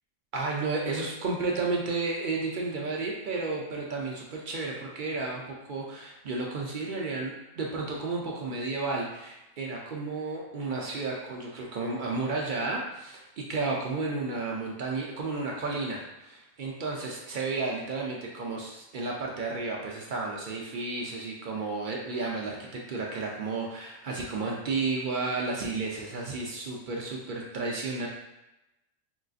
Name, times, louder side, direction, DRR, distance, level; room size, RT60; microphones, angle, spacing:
voice 1, 0.3-28.1, right 3 dB, 60° right, -2 dB, 0.5 m, -32 dB
3.8 x 2.5 x 2.3 m, 0.94 s
omnidirectional pair, 1.3 m